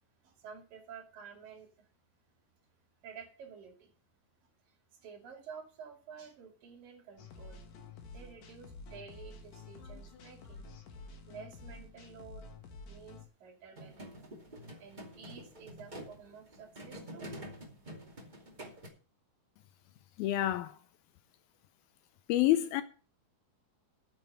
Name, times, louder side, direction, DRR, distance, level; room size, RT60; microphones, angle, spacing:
voice 1, 0.2-1.9 3.0-3.9 5.0-7.6 8.1-10.7 11.3-12.5 12.9-14.2 14.8-17.4, right 6 dB, 60° right, 4.0 m, -51 dB
sound 1, 7.2-13.3, left 3 dB, 60° left, 3.1 m, -50 dB
sound 2, 13.8-18.9, equal, 15° right, 1.6 m, -47 dB
voice 2, 20.2-20.7 22.3-22.8, left 14 dB, 80° left, 2.4 m, -27 dB
9.2 x 7.3 x 8.6 m
omnidirectional pair, 4.6 m